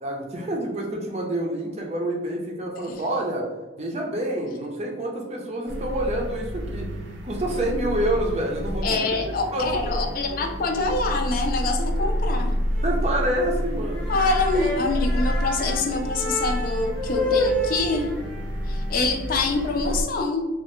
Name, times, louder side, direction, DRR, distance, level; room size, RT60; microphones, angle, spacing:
voice 1, 0.0-3.5 3.8-6.9 7.2-9.2 9.5-10.0 10.3-10.5 12.0-12.1 12.8-14.3, right 1 dB, 35° right, 0 dB, 0.5 m, -28 dB
sound 1, 5.7-20.0, equal, 85° right, 0.5 m, -29 dB
voice 2, 8.8-12.6 14.1-18.1 18.7-20.5, left 3 dB, 45° left, 4 dB, 0.3 m, -25 dB
Erhu sample, 11.3-11.9 12.2-12.3 12.7-12.9 13.2-13.4 13.7-19.7, left 1 dB, 5° left, 0.7 m, -30 dB
3.2 x 2.3 x 2.9 m, 1.2 s
head